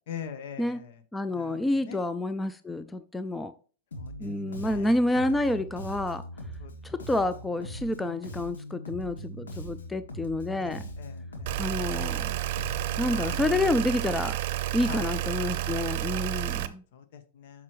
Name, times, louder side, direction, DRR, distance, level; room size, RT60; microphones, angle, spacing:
voice 1, 0.1-1.0 1.3-2.0 3.9-5.0 6.6-6.7 7.0-7.2 10.6-11.6 13.1-13.4 14.9-15.1 16.9-17.6, left 7 dB, 65° left, 1.2 m, -43 dB
voice 2, 1.1-3.5 4.2-6.2 6.8-10.8 11.6-12.4 13.0-14.4 14.7-16.8, left 1 dB, 10° left, 0.4 m, -29 dB
Bass guitar, 3.9-13.8, equal, 90° left, 1.7 m, -41 dB
sound 1, 11.5-16.7, right 14 dB, 60° right, 0.6 m, -30 dB
8.5 x 6.0 x 3.1 m
hypercardioid pair, 110°, 0 cm